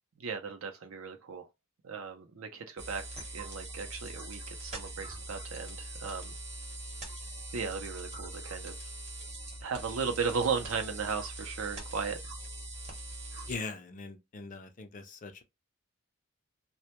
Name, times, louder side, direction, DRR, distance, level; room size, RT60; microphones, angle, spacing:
voice 1, 0.2-1.5 1.8-3.0 3.3-6.3 7.5-8.7 9.6-12.2, right 5 dB, 70° right, 0.5 m, -36 dB
sound 1, 2.8-13.6, right 1 dB, 30° right, 0.8 m, -42 dB
voice 2, 13.5-15.4, left 3 dB, 35° left, 0.4 m, -41 dB
2.1 x 2.1 x 2.8 m
head